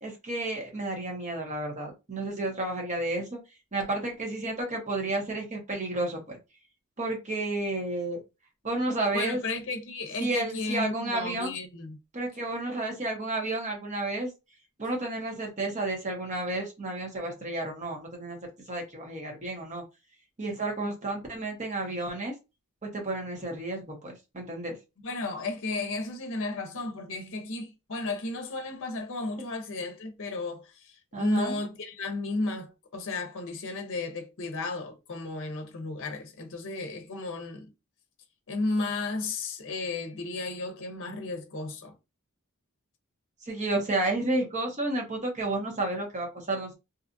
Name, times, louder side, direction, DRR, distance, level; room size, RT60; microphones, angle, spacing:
voice 1, 0.0-3.4 3.7-6.2 7.0-8.2 8.6-9.4 10.2-11.5 12.1-14.3 14.8-18.4 18.7-19.8 20.4-22.3 22.9-24.8 31.1-31.6 43.4-46.7, right 2 dB, 35° right, 1.0 m, -31 dB
voice 2, 9.1-12.0 25.0-37.7 38.5-41.9, left 3 dB, 60° left, 0.7 m, -33 dB
2.7 x 2.4 x 2.5 m
head